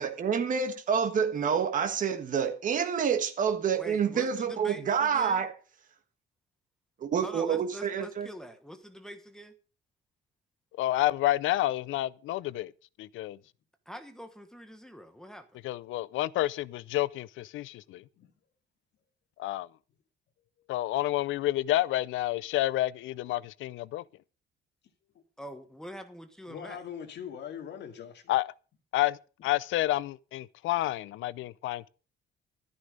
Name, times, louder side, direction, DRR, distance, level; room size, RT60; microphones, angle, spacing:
voice 1, 0.0-5.5 7.0-8.3, right 7 dB, 40° right, 1.5 m, -28 dB
voice 2, 3.7-5.4 7.2-9.5 13.9-15.5 25.4-26.8, equal, 5° left, 1.3 m, -44 dB
voice 3, 10.8-12.7 13.0-13.4 15.6-18.0 19.4-19.7 20.7-24.0 28.3-28.5 28.9-31.9, left 15 dB, 80° left, 0.6 m, -29 dB
voice 4, 26.5-28.3, left 8 dB, 60° left, 2.2 m, -41 dB
13.0 x 9.8 x 5.1 m
cardioid pair, 160°, 20 cm